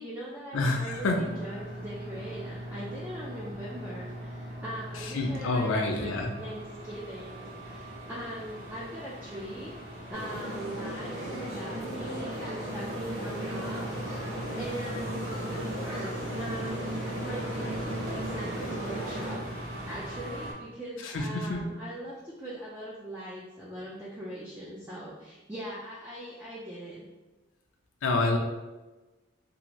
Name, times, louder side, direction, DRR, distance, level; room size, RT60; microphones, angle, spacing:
voice 1, 0.0-9.7 10.1-27.1, right 1 dB, 10° right, -7 dB, 0.3 m, -41 dB
voice 2, 0.5-1.2 5.1-6.3 21.0-21.6 28.0-28.4, left 2 dB, 65° left, 2 dB, 0.4 m, -27 dB
sound 1, 0.9-20.5, equal, 65° right, 0.7 m, -40 dB
sound 2, 10.1-19.3, right 1 dB, 85° right, 1.4 m, -36 dB
2.7 x 2.5 x 3.0 m, 1.1 s
head